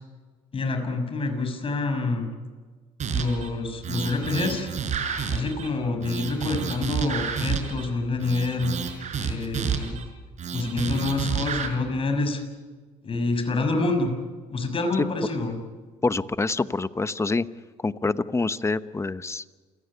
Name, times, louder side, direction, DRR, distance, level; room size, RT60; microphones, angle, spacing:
voice 1, 0.5-2.3 3.1-4.7 5.3-8.7 9.2-10.0 10.5-12.4 13.0-14.1 14.5-15.6, left 3 dB, 35° left, 6 dB, 6.1 m, -27 dB
sound 1, 3.0-3.5 3.8-5.7 6.0-7.9 8.2-10.0 10.4-11.7, right 6 dB, 50° right, 5.3 m, -29 dB
voice 2, 16.0-17.5 17.8-19.4, left 3 dB, 20° left, 14 dB, 1.0 m, -26 dB
29.0 x 17.0 x 9.9 m, 1.4 s
supercardioid pair, 80°, 15 cm